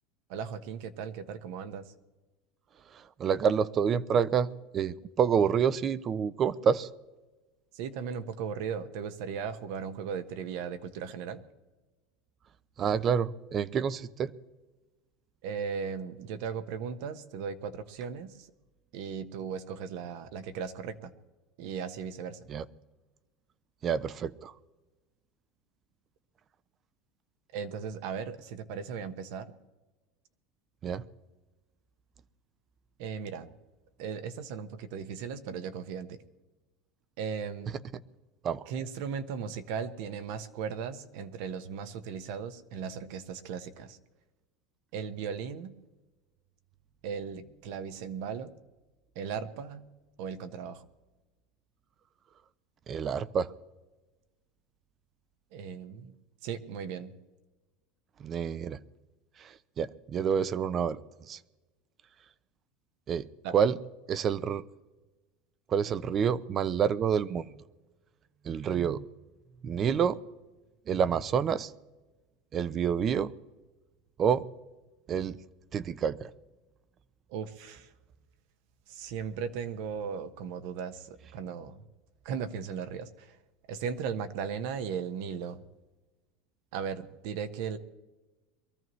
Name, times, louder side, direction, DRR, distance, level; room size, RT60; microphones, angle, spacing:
voice 1, 0.3-1.9 7.7-11.4 15.4-18.5 18.9-21.1 21.6-22.4 27.5-29.6 33.0-33.5 34.0-36.2 37.2-37.7 38.7-44.0 44.9-45.7 47.0-48.5 49.1-49.8 50.2-50.8 55.5-56.2 56.4-57.1 63.4-63.6 77.3-77.9 78.9-81.8 82.2-83.4 83.7-85.6 86.7-87.8, right 6 dB, 70° right, 10 dB, 1.2 m, -37 dB
voice 2, 3.2-4.5 4.7-6.9 12.8-14.3 22.5-22.6 23.8-24.5 30.8-31.0 38.4-38.6 52.9-53.5 58.2-58.8 59.4-61.0 61.3-61.4 63.1-63.3 63.5-63.8 64.1-64.6 65.7-67.5 68.4-69.1 69.6-70.2 70.9-71.7 72.5-73.3 74.2-74.5 75.1-75.4 75.7-76.3, right 7 dB, 35° right, 17 dB, 0.6 m, -28 dB
23.0 x 14.0 x 3.2 m, 1.1 s
supercardioid pair, 115°, 0 cm